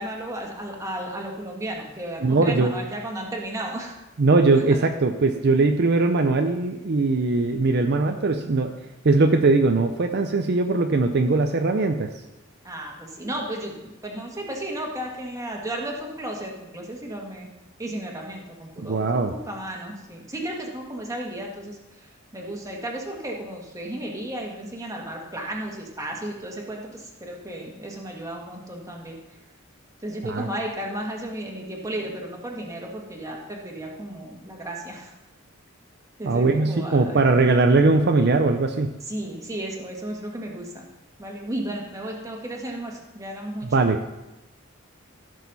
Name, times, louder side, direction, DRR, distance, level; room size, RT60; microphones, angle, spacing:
voice 1, 0.0-4.0 4.7-4.8 12.6-17.5 17.8-29.2 30.0-35.1 36.2-37.2 39.1-40.8 41.2-43.7, right 1 dB, 15° right, -1 dB, 1.7 m, -34 dB
voice 2, 2.2-2.7 4.2-8.7 9.0-12.1 18.8-19.3 30.2-30.5 36.2-38.9 43.7-44.0, right 3 dB, 50° right, 5 dB, 0.5 m, -20 dB
15.0 x 6.5 x 4.1 m, 0.99 s
head